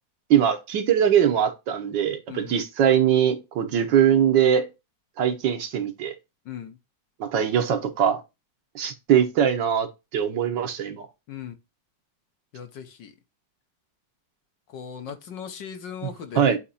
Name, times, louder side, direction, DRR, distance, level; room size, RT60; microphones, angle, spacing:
voice 1, 0.3-4.7 5.2-6.1 7.2-8.2 8.7-9.9 10.1-11.1 16.0-16.6, right 9 dB, 90° right, 1.8 m, -22 dB
voice 2, 2.3-2.6 6.5-6.8 11.3-11.5 12.5-13.1 14.7-16.6, left 7 dB, 80° left, 1.8 m, -38 dB
8.3 x 3.0 x 4.2 m
omnidirectional pair, 1.9 m